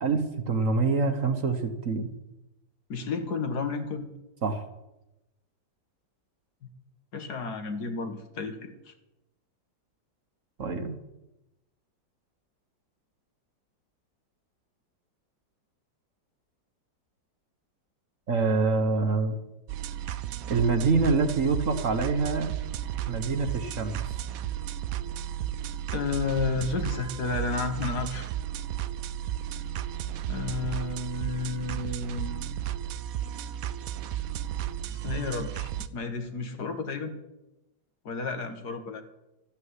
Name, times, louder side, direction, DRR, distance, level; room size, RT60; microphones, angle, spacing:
voice 1, 0.0-2.1 4.4-4.6 10.6-11.0 18.3-19.4 20.5-22.5 23.1-24.1, right 4 dB, 50° right, 7 dB, 1.4 m, -26 dB
voice 2, 2.9-4.1 7.1-8.9 25.9-28.3 30.3-32.6 35.0-37.2 38.1-39.0, left 4 dB, 60° left, 7 dB, 1.9 m, -32 dB
sound 1, 19.7-35.9, right 11 dB, 65° right, 0.9 m, -34 dB
13.0 x 9.0 x 9.6 m, 0.96 s
omnidirectional pair, 2.0 m